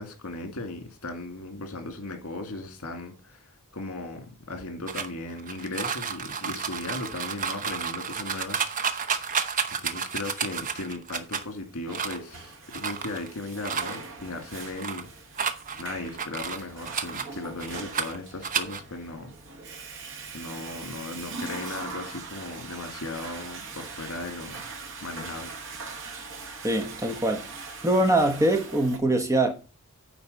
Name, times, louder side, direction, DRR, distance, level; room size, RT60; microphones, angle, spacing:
voice 1, 0.0-3.4 3.7-9.1 9.8-15.1 15.8-19.3 20.3-24.6 25.0-25.6, left 2 dB, 70° left, 2.1 m, -37 dB
sound 1, 4.9-11.4 11.9-12.4 12.7-13.3 13.6-14.0 14.4-15.0 15.4-17.3 17.6-18.2 18.4-18.8, right 6 dB, 35° right, 0.8 m, -31 dB
Water / Toilet flush, 11.5-29.0, right 4 dB, 60° right, 1.6 m, -41 dB
voice 2, 26.6-27.4 27.8-29.5, right 1 dB, 15° right, 1.1 m, -23 dB
9.5 x 4.2 x 6.6 m
head